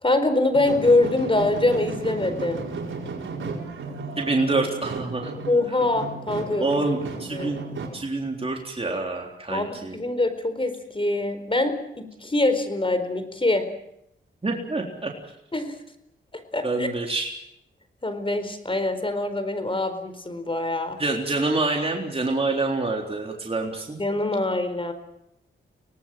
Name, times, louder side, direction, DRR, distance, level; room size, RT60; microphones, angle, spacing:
voice 1, 0.0-2.7 5.5-6.8 7.3-7.6 9.5-13.7 15.5-15.7 16.5-16.9 18.0-21.0 24.0-24.9, left 2 dB, 25° left, 10 dB, 4.3 m, -24 dB
sound 1, 0.5-7.9, right 4 dB, 70° right, 4.9 m, -34 dB
voice 2, 4.2-5.3 5.7-5.8 6.6-7.6 7.9-10.0 14.4-15.1 16.6-17.4 21.0-24.0, right 2 dB, 30° right, 1 dB, 3.8 m, -26 dB
24.0 x 19.0 x 7.7 m, 0.80 s
cardioid pair, 60°, 21 cm